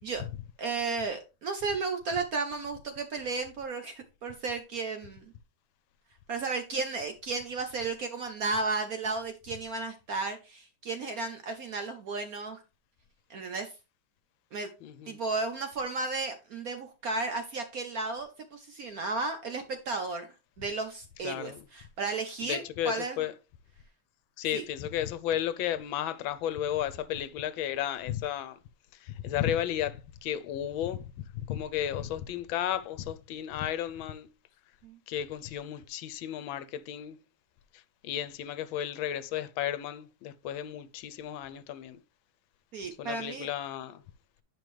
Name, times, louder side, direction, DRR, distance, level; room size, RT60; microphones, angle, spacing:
voice 1, 0.6-5.2 6.3-12.6 13.3-13.7 14.5-14.7 15.1-20.3 20.6-23.2 24.5-24.6 34.8-35.0 42.7-43.5, right 3 dB, 65° right, 0.9 m, -34 dB
voice 2, 14.8-15.2 21.2-21.6 22.4-23.3 24.4-28.6 29.0-34.3 35.1-37.2 37.7-42.0 43.0-44.0, left 11 dB, 80° left, 1.3 m, -33 dB
9.2 x 5.2 x 3.1 m
omnidirectional pair, 2.2 m